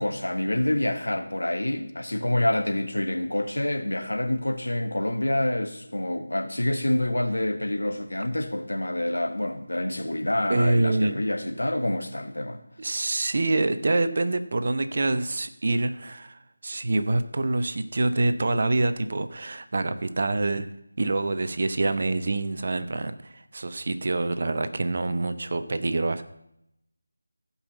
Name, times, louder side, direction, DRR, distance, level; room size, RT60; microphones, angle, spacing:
voice 1, 0.0-12.6, left 1 dB, 80° left, 7 dB, 1.6 m, -27 dB
voice 2, 10.5-11.2 12.8-20.7 21.0-26.2, right 2 dB, 50° right, 10 dB, 0.9 m, -26 dB
15.0 x 5.7 x 7.1 m, 0.81 s
figure-of-eight pair, 165°, 0 cm